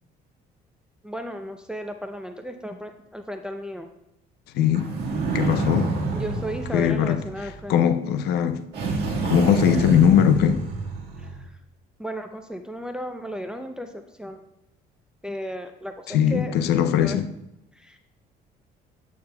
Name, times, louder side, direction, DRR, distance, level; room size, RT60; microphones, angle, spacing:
voice 1, 1.0-3.9 6.1-8.0 11.2-11.6 12.0-14.4 15.2-16.5 17.0-17.2 17.7-18.0, equal, 5° right, 0.5 m, -35 dB
voice 2, 4.5-4.9 5.3-5.9 6.7-7.2 7.7-8.6 9.2-10.6 16.1-17.3, left 9 dB, 75° left, 0.5 m, -20 dB
sound 1, 4.7-7.8 8.7-11.4, right 3 dB, 80° right, 1.6 m, -28 dB
8.6 x 8.2 x 2.2 m
cardioid pair, 110°, 17 cm